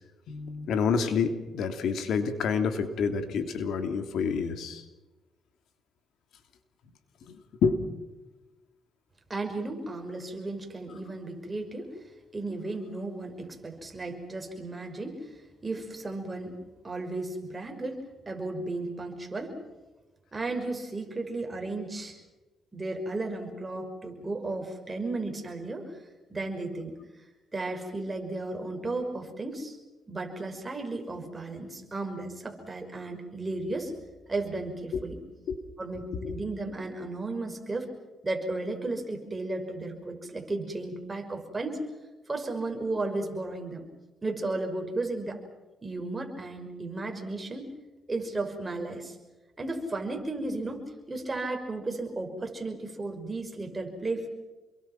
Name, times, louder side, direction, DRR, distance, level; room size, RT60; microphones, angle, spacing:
voice 1, 0.3-4.8 7.3-7.8 34.9-35.0 35.5-35.6 35.9-36.4, left 5 dB, 75° left, 7 dB, 3.0 m, -28 dB
voice 2, 9.3-12.0 12.3-15.3 15.6-16.5 16.8-19.6 20.3-22.2 22.7-25.9 26.3-27.0 27.5-29.8 30.1-33.9 34.3-35.2 35.8-37.9 38.2-41.8 42.3-43.8 44.2-45.4 45.8-47.7 48.1-49.2 49.6-54.3, right 2 dB, 20° right, 3 dB, 5.9 m, -34 dB
28.5 x 23.0 x 6.0 m, 1.1 s
cardioid pair, 90°, 0 cm